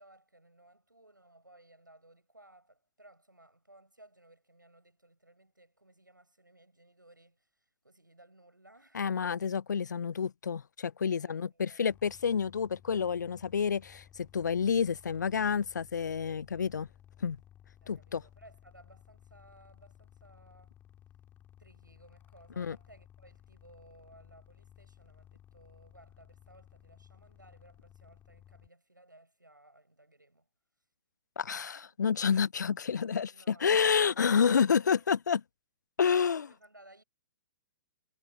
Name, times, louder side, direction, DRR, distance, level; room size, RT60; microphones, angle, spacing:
voice 1, 0.0-9.1 11.1-11.8 17.8-20.7 21.6-30.5 31.7-31.9 33.3-35.1 36.0-37.0, right 1 dB, 85° right, 7.8 m, -59 dB
voice 2, 8.9-16.9 17.2-17.4 17.9-18.2 22.6-22.8 31.4-35.4 36.0-36.5, left 6 dB, 65° left, 0.6 m, -29 dB
sound 1, 11.9-28.7, left 10 dB, 20° left, 2.0 m, -58 dB
figure-of-eight pair, 120°, 10 cm